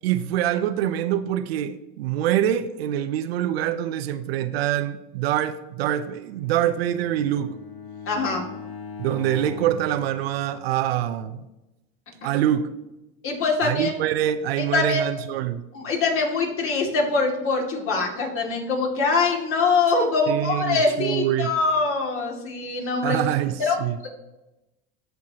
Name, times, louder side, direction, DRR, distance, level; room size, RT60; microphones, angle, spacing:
voice 1, 0.0-7.6 9.0-11.5 12.2-12.7 13.6-15.6 20.3-21.5 23.0-24.0, right 11 dB, 90° right, 0.6 m, -25 dB
Bowed string instrument, 6.3-10.9, left 5 dB, 70° left, 2.2 m, -40 dB
voice 2, 8.1-8.4 13.2-13.9 14.7-15.0 15.7-23.3 23.6-24.1, left 4 dB, 45° left, 2.3 m, -23 dB
13.5 x 4.6 x 2.9 m
supercardioid pair, 100°, 30 cm